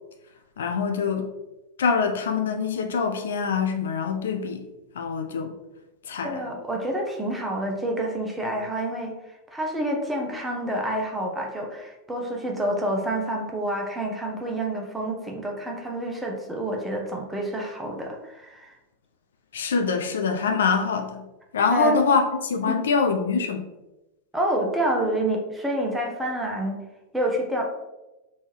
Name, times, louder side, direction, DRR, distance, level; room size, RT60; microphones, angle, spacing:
voice 1, 0.6-1.3 1.8-4.6 5.0-5.5 6.1-6.5 19.5-21.2 21.5-23.6, left 5 dB, 65° left, 5 dB, 0.3 m, -24 dB
voice 2, 6.2-9.1 9.5-18.7 21.7-22.0 22.6-22.8 24.3-26.8 27.1-27.6, right 1 dB, 5° right, 0 dB, 0.7 m, -28 dB
3.4 x 2.7 x 3.2 m, 1.0 s
figure-of-eight pair, 90°, 0 cm